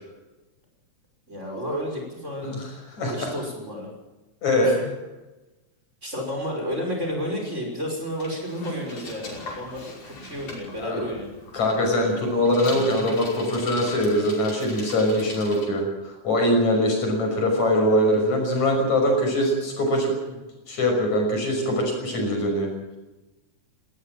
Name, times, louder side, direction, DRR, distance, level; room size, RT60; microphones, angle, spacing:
voice 1, 1.3-2.6 3.1-3.9 4.6-4.7 6.0-11.3, equal, 20° right, 0 dB, 6.1 m, -31 dB
voice 2, 2.4-3.3 4.4-4.7 10.8-11.0 11.5-20.1 20.7-22.7, left 1 dB, 70° left, 2 dB, 7.3 m, -22 dB
Bicycle, 8.1-15.7, left 2 dB, 90° left, 7.2 m, -40 dB
19.5 x 18.0 x 7.6 m, 1.1 s
omnidirectional pair, 3.3 m